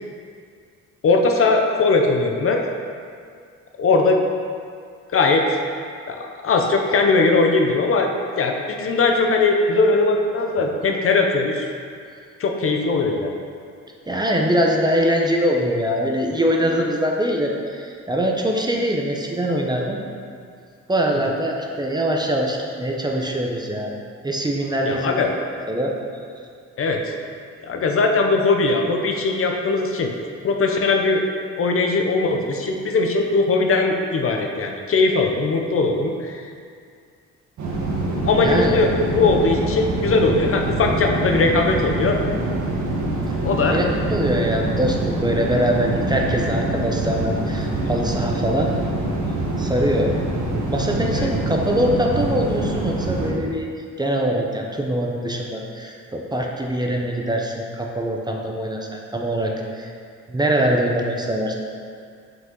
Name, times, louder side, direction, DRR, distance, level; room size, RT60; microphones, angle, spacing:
voice 1, 1.0-2.6 3.8-4.2 5.1-5.4 6.1-8.1 8.4-11.7 12.4-13.3 24.8-25.3 26.8-27.0 27.6-30.1 30.4-31.2 31.6-36.5 38.2-42.2 43.4-43.8 51.1-51.3, left 3 dB, 45° left, 2 dB, 0.7 m, -20 dB
voice 2, 14.1-20.0 20.9-23.9 24.2-25.9 38.4-38.7 43.7-48.7 49.6-50.1 50.7-53.7 54.0-59.9 60.3-61.6, equal, 15° right, 0 dB, 0.7 m, -23 dB
sound 1, 37.6-53.3, right 2 dB, 65° right, 1.4 m, -25 dB
5.9 x 5.2 x 3.8 m, 2.2 s
cardioid pair, 90°, 30 cm